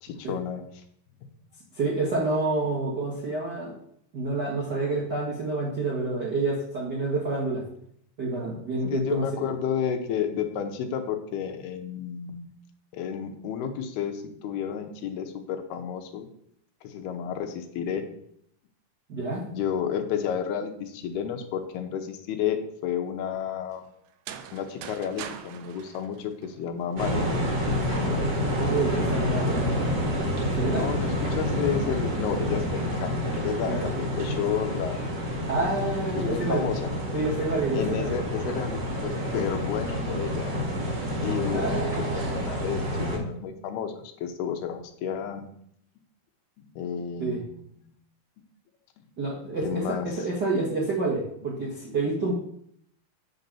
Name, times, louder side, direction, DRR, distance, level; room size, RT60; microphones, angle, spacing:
voice 1, 0.0-0.6 8.9-12.5 12.9-16.3 16.8-18.0 19.5-22.6 22.8-23.9 24.5-27.4 30.7-35.2 36.1-37.0 37.7-40.5 41.2-45.5 46.6-47.6 49.6-50.1, left 8 dB, 85° left, 5 dB, 2.8 m, -31 dB
voice 2, 1.7-3.7 4.1-7.6 8.2-9.2 19.1-19.4 28.6-29.9 30.4-30.9 33.4-33.9 35.5-36.7 37.1-38.1 39.1-39.2 41.2-42.1 47.2-47.4 49.2-52.3, right 3 dB, 60° right, -6 dB, 1.1 m, -28 dB
sound 1, 24.1-27.0, right 8 dB, 80° right, 1.9 m, -42 dB
sound 2, 27.0-43.2, equal, 40° right, 1.6 m, -28 dB
8.3 x 4.0 x 7.0 m, 0.69 s
omnidirectional pair, 4.5 m